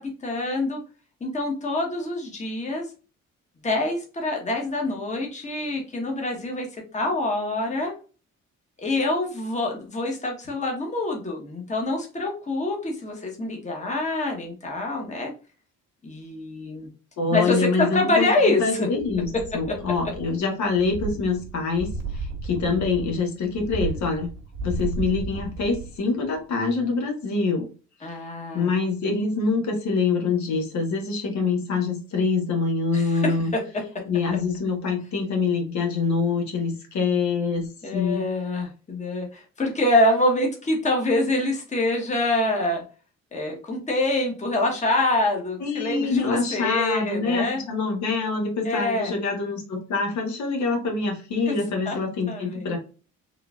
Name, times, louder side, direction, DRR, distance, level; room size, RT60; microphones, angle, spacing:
voice 1, 0.2-0.8 1.2-2.9 3.6-6.7 6.9-7.9 8.8-15.3 16.0-16.9 17.3-18.9 28.0-28.7 32.9-33.3 37.8-42.8 43.3-47.6 48.6-49.1 51.5-51.6 51.8-52.0 52.3-52.7, left 2 dB, 25° left, 1 dB, 1.0 m, -25 dB
voice 2, 17.2-24.3 24.6-27.7 28.5-33.5 34.1-38.3 45.6-52.8, left 4 dB, 65° left, 2 dB, 1.1 m, -25 dB
sound 1, 19.0-20.4 20.7-26.0 26.4-26.5, right 3 dB, 70° right, 1.1 m, -34 dB
3.8 x 2.4 x 2.3 m, 0.35 s
cardioid pair, 90°, 30 cm